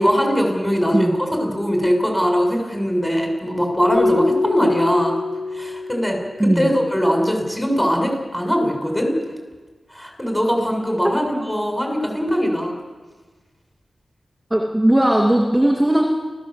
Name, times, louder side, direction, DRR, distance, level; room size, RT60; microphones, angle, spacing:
voice 1, 0.0-5.2 5.5-9.1 9.9-12.7, equal, 5° left, 2 dB, 6.9 m, -21 dB
Keyboard (musical), 3.9-6.7, left 3 dB, 80° left, 5.3 m, -24 dB
voice 2, 6.4-6.7 14.5-16.1, right 1 dB, 10° right, 0 dB, 2.5 m, -17 dB
29.0 x 15.5 x 8.0 m, 1.3 s
wide cardioid pair, 85°, 0 cm